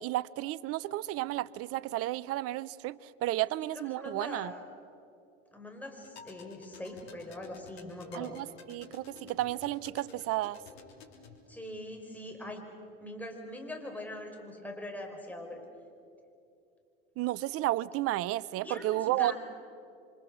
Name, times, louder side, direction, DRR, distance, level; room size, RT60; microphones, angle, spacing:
voice 1, 0.0-4.5 8.1-10.6 17.2-19.3, right 16 dB, 45° right, 0.6 m, -32 dB
voice 2, 4.0-4.7 5.5-8.4 11.5-12.7 13.0-15.6 18.6-19.3, left 1 dB, 5° left, 5.3 m, -42 dB
sound 1, 6.0-11.4, left 4 dB, 75° left, 3.4 m, -52 dB
29.5 x 25.0 x 6.5 m
hypercardioid pair, 75°, 31 cm